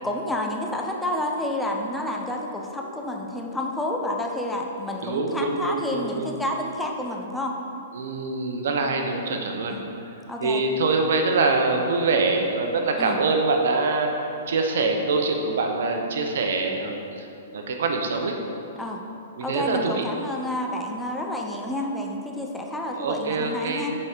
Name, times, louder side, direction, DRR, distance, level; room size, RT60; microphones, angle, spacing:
voice 1, 0.0-7.5 9.7-9.8 10.3-10.6 13.0-13.2 18.8-19.0 19.4-24.0, left 1 dB, 5° left, 1 dB, 0.6 m, -29 dB
voice 2, 5.0-6.3 7.9-9.8 10.4-17.3 17.5-18.4 19.4-20.0 22.9-23.9, right 3 dB, 70° right, 3 dB, 0.8 m, -24 dB
6.2 x 4.8 x 4.5 m, 2.8 s
hypercardioid pair, 135°, 0 cm